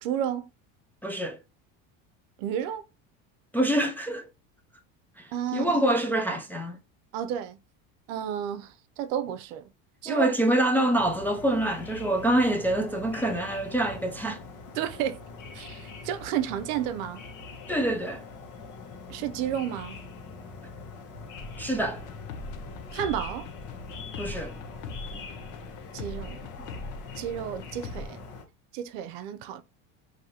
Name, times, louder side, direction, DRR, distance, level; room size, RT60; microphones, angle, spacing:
voice 1, 0.0-0.5 2.4-2.8 5.3-5.7 7.1-7.6 8.1-9.7 10.0-10.3 14.8-15.2 15.5-17.2 19.1-20.0 22.9-23.5 25.9-26.5 27.2-28.2 28.7-29.6, right 10 dB, 75° right, 0.6 m, -31 dB
voice 2, 1.0-1.4 3.5-4.3 5.2-6.8 10.1-14.4 17.7-18.2 21.6-22.0 24.2-24.6 25.1-25.2, right 1 dB, 5° left, 0.3 m, -26 dB
sound 1, 11.0-28.4, left 4 dB, 50° left, 1.2 m, -43 dB
sound 2, 21.4-28.1, left 3 dB, 65° left, 0.7 m, -41 dB
4.7 x 2.7 x 2.8 m
supercardioid pair, 125°, 39 cm